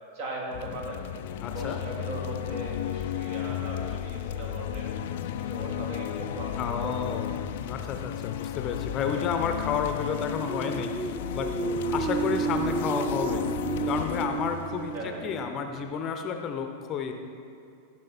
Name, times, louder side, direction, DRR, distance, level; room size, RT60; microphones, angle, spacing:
voice 1, 0.1-1.0 1.5-7.0 9.1-9.3 11.6-11.9 14.9-15.3, right 1 dB, 55° right, -2 dB, 2.3 m, -38 dB
sound 1, 0.5-15.9, left 10 dB, 55° left, 0.4 m, -34 dB
voice 2, 1.4-1.8 6.6-7.3 7.6-10.9 11.3-11.5 11.8-13.5 13.8-17.1, left 6 dB, 30° left, 6 dB, 0.8 m, -31 dB
sound 2, 10.3-16.0, right 5 dB, 15° right, 0.3 m, -32 dB
15.0 x 6.2 x 4.5 m, 2.6 s
figure-of-eight pair, 90°, 0 cm